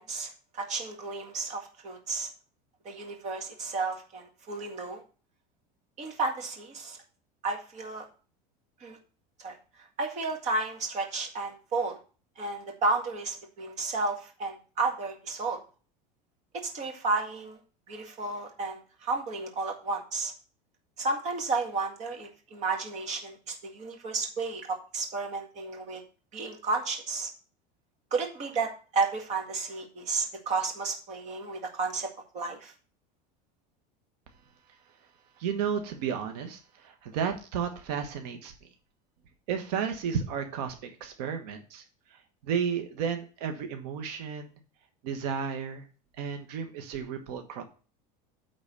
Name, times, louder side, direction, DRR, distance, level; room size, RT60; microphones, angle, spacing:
voice 1, 0.0-2.3 2.9-5.0 6.0-7.0 7.4-8.1 8.8-9.0 9.4-9.6 10.0-12.0 12.4-15.6 16.6-17.6 17.9-20.3 21.0-26.0 26.3-27.3 28.1-32.7, right 3 dB, 35° right, 2 dB, 1.9 m, -32 dB
voice 2, 35.4-38.7 39.5-44.6 45.0-45.9 46.2-47.6, right 7 dB, 80° right, 5 dB, 1.3 m, -33 dB
8.9 x 4.0 x 6.7 m, 0.37 s
supercardioid pair, 150°, 21 cm